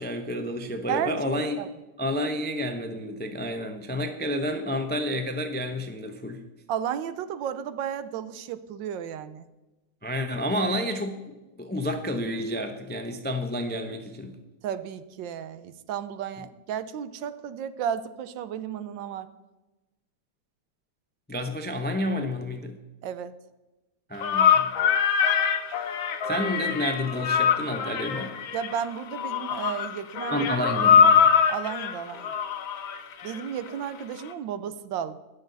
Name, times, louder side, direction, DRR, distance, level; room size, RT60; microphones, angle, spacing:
voice 1, 0.0-1.6 2.0-6.4 10.0-14.4 21.3-22.8 24.1-24.7 25.8-26.0 26.3-28.3 30.3-31.3, equal, 15° left, 6 dB, 0.4 m, -30 dB
voice 2, 0.9-1.7 6.7-9.4 14.6-19.3 23.0-23.4 28.5-30.4 31.5-32.3 33.2-35.2, right 9 dB, 75° right, 13 dB, 1.4 m, -33 dB
sound 1, 24.2-33.7, left 7 dB, 80° left, 1.7 m, -23 dB
21.5 x 7.3 x 4.0 m, 1.1 s
omnidirectional pair, 2.1 m